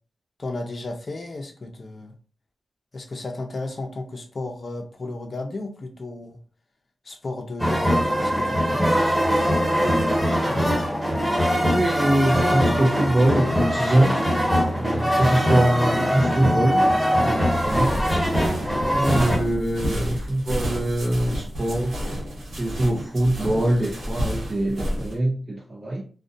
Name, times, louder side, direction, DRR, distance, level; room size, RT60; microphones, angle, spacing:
voice 1, 0.4-2.1 2.9-6.4 7.0-9.0 18.6-19.0, left 2 dB, 50° left, 3 dB, 0.5 m, -34 dB
sound 1, 7.6-19.4, equal, 10° right, 1.3 m, -22 dB
voice 2, 11.7-14.2 14.7-16.8 17.1-18.0 18.9-22.0 22.6-26.0, right 1 dB, 35° right, -3 dB, 0.5 m, -23 dB
sound 2, 17.4-25.1, equal, 85° right, 1.2 m, -31 dB
2.5 x 2.1 x 2.5 m, 0.40 s
cardioid pair, 65°, 0 cm